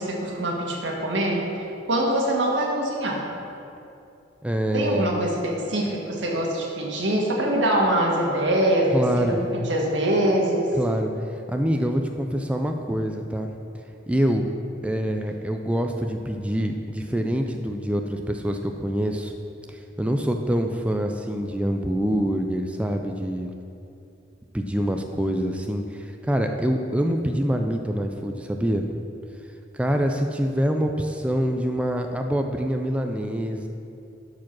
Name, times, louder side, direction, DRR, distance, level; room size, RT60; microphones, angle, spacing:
voice 1, 0.0-3.2 4.7-10.7, right 1 dB, 85° right, -1 dB, 1.7 m, -24 dB
voice 2, 4.4-5.1 8.9-9.4 10.8-13.5 14.1-14.5 14.8-19.3 19.7-23.5 24.5-28.9 29.7-33.7, equal, 5° right, 4 dB, 0.4 m, -25 dB
12.0 x 4.8 x 6.0 m, 2.7 s
head